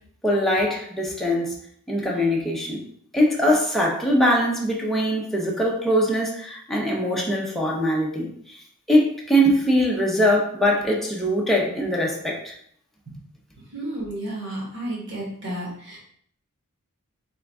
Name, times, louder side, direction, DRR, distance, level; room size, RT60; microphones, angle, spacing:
voice 1, 0.2-1.5 1.9-2.8 3.1-8.3 8.9-12.5, equal, ahead, -3 dB, 0.8 m, -22 dB
voice 2, 13.7-16.0, right 1 dB, 55° right, -4 dB, 1.7 m, -32 dB
3.6 x 3.6 x 3.6 m, 0.64 s
head